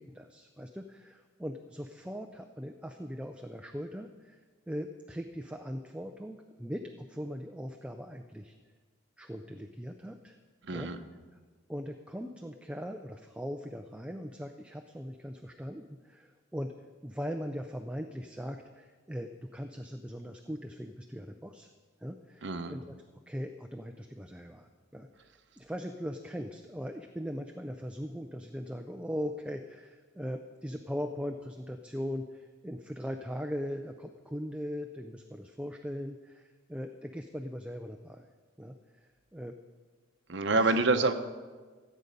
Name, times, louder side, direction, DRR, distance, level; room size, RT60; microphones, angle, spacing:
voice 1, 0.0-4.4 4.7-8.5 9.2-10.4 10.7-10.9 11.7-16.7 17.0-21.7 22.0-22.9 23.3-38.3 38.6-39.5 40.5-40.8, equal, 5° right, 5 dB, 0.4 m, -40 dB
voice 2, 10.6-11.0 22.4-22.8 40.3-41.1, right 3 dB, 65° right, 8 dB, 0.8 m, -27 dB
15.0 x 8.3 x 5.2 m, 1.4 s
head